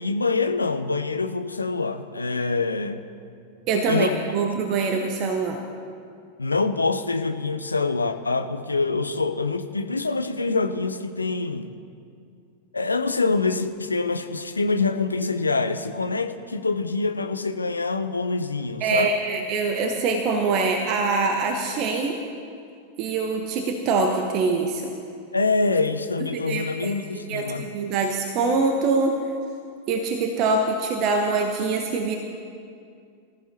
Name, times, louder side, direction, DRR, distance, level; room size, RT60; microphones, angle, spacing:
voice 1, 0.0-3.0 3.9-4.1 6.4-11.7 12.7-19.1 25.3-27.7, left 3 dB, 80° left, 8 dB, 0.7 m, -25 dB
voice 2, 3.7-5.6 18.8-22.2 23.0-24.9 26.5-27.0 27.3-29.3 29.9-32.2, right 4 dB, 40° right, 4 dB, 1.1 m, -24 dB
23.5 x 14.0 x 2.9 m, 2.4 s
figure-of-eight pair, 90°, 0 cm